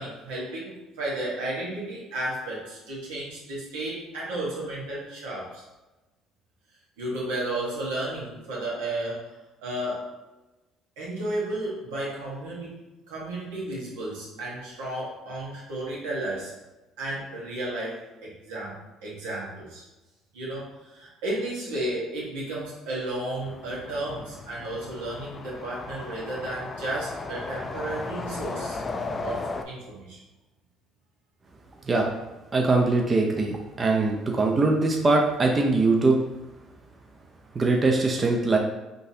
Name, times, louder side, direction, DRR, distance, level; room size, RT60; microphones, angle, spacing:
voice 1, 0.0-5.6 7.0-9.3 9.6-10.1 11.0-16.5 17.0-19.8 20.3-28.8 29.2-30.2, right 1 dB, 85° right, -5 dB, 1.1 m, -33 dB
sound 1, 23.4-29.6, left 3 dB, 30° left, 0.3 m, -36 dB
voice 2, 32.5-36.2 37.5-38.6, right 3 dB, 30° right, 1 dB, 0.5 m, -22 dB
3.8 x 2.6 x 2.7 m, 1.1 s
supercardioid pair, 75°, 0 cm